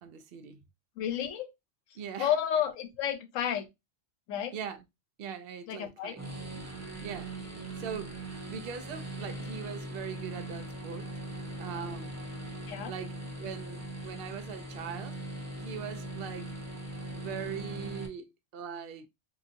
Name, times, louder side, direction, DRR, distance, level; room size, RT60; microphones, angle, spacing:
voice 1, 0.0-0.6 2.0-2.3 4.5-4.8 5.2-6.2 7.0-7.3 7.8-8.2 8.5-11.1 11.6-12.1 12.8-15.2 15.6-16.5 17.1-19.1, right 7 dB, 60° right, 0.6 m, -41 dB
voice 2, 1.0-1.5 2.2-3.7 4.3-4.5 5.7-6.2 12.7-12.9, left 9 dB, 90° left, 1.0 m, -31 dB
sound 1, 6.2-18.1, right 2 dB, 25° right, 0.3 m, -40 dB
3.8 x 2.5 x 2.5 m
omnidirectional pair, 1.3 m